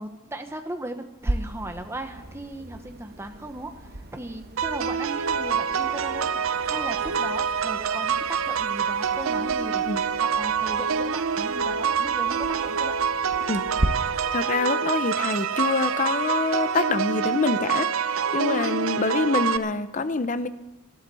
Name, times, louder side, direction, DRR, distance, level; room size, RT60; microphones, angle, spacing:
voice 1, 0.0-6.3 6.6-12.9, right 1 dB, 15° right, 6 dB, 1.1 m, -37 dB
sound 1, 1.2-13.9, right 1 dB, 50° right, 1.2 m, -37 dB
sound 2, 4.6-19.6, right 6 dB, 80° right, 0.6 m, -26 dB
voice 2, 14.3-20.5, left 3 dB, 40° left, 12 dB, 0.7 m, -26 dB
14.0 x 12.5 x 7.0 m, 1.1 s
head